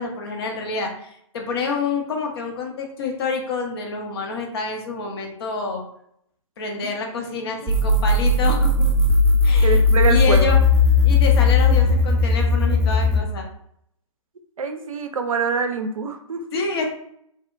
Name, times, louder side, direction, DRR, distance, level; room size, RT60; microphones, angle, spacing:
voice 1, 0.0-5.8 6.6-8.9 9.4-10.6 11.0-13.5 16.5-16.9, left 4 dB, 45° left, 2 dB, 0.6 m, -28 dB
sound 1, 7.7-13.2, left 3 dB, 10° right, 0.3 m, -17 dB
voice 2, 9.6-10.5 14.6-16.4, right 5 dB, 80° right, 7 dB, 0.4 m, -25 dB
2.7 x 2.1 x 2.4 m, 0.71 s
figure-of-eight pair, 125°, 17 cm